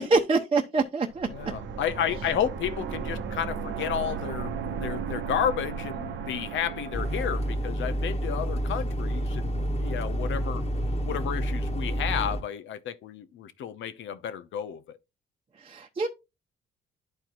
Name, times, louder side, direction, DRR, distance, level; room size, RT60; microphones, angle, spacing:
voice 1, 0.0-1.3 15.6-16.1, right 3 dB, 30° right, 0.9 m, -25 dB
sound 1, 1.1-7.6, right 6 dB, 65° right, 0.9 m, -35 dB
voice 2, 1.2-10.6 11.1-15.0, left 9 dB, 75° left, 0.8 m, -32 dB
sound 2, 6.9-12.4, equal, 30° left, 1.3 m, -29 dB
11.5 x 4.5 x 2.5 m
cardioid pair, 90°, 20 cm